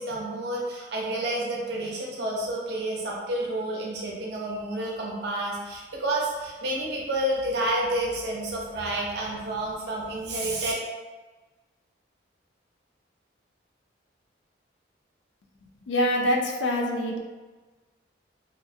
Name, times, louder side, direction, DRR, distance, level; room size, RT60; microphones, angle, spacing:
voice 1, 0.0-10.7, right 1 dB, 55° right, -3 dB, 0.5 m, -29 dB
voice 2, 15.9-17.2, left 1 dB, 70° left, 1 dB, 0.4 m, -25 dB
2.4 x 2.0 x 2.6 m, 1.3 s
head